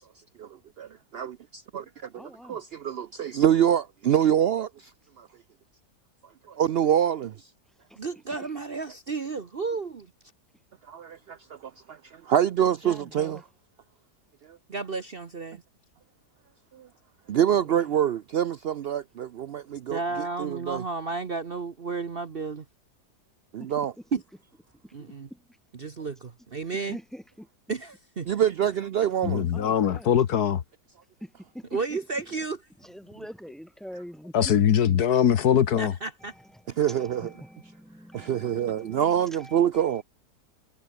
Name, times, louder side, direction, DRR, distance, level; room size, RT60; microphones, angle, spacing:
voice 1, 0.8-2.2 2.5-4.9 5.2-5.3 6.6-7.5 10.9-13.4 14.5-14.6 16.7-16.9 17.3-20.0 20.4-20.8 23.5-23.9 28.3-29.5 36.8-37.3 38.1-40.0, right 10 dB, 75° right, 0.5 m, -25 dB
voice 2, 2.1-2.6 7.9-8.0 8.3-8.5 12.8-13.4 17.5-18.0 23.6-24.1 24.8-25.6 26.8-27.5 28.6-28.7 29.0-29.2 29.5-30.1 31.2-32.0 32.4-32.5 32.8-34.6 36.2-40.0, equal, ahead, 3.1 m, -45 dB
voice 3, 8.0-10.1 14.7-15.6 19.9-22.7 24.1-24.2 24.9-25.3 25.8-27.0 27.7-28.3 31.7-32.6 35.8-36.3, right 4 dB, 40° right, 1.1 m, -32 dB
voice 4, 29.2-30.6 34.3-35.9, left 9 dB, 70° left, 1.6 m, -22 dB
omnidirectional pair, 1.7 m